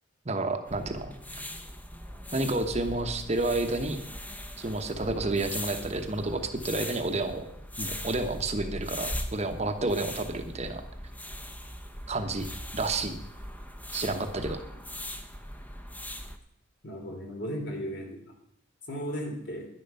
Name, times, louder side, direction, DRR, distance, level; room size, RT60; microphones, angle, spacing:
voice 1, 0.2-1.1 2.3-4.0 4.6-7.5 7.8-10.8 12.1-12.5 12.7-13.2 13.9-14.6, right 2 dB, 35° right, 6 dB, 1.0 m, -30 dB
sound 1, 0.7-16.4, equal, 10° left, 0.9 m, -40 dB
voice 2, 16.8-18.2 18.9-19.7, equal, 60° left, 2 dB, 3.1 m, -35 dB
11.0 x 10.0 x 5.5 m, 0.77 s
head